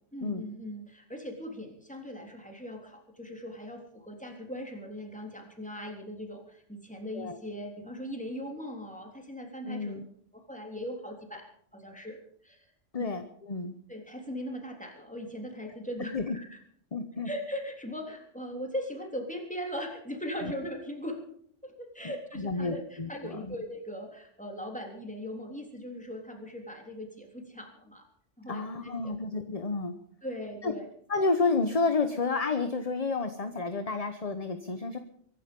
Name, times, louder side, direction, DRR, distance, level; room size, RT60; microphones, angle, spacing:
voice 1, 0.1-10.0 10.3-12.7 13.0-13.1 13.9-16.5 17.2-21.2 21.6-28.0 28.4-29.4 30.2-30.9, equal, 5° left, 2 dB, 3.5 m, -39 dB
voice 2, 9.7-10.0 12.9-13.7 16.1-16.4 16.9-17.3 22.3-23.5 28.5-29.9 30.6-30.7 31.1-35.0, left 3 dB, 35° left, 8 dB, 1.1 m, -30 dB
24.0 x 11.5 x 5.4 m, 0.63 s
omnidirectional pair, 1.2 m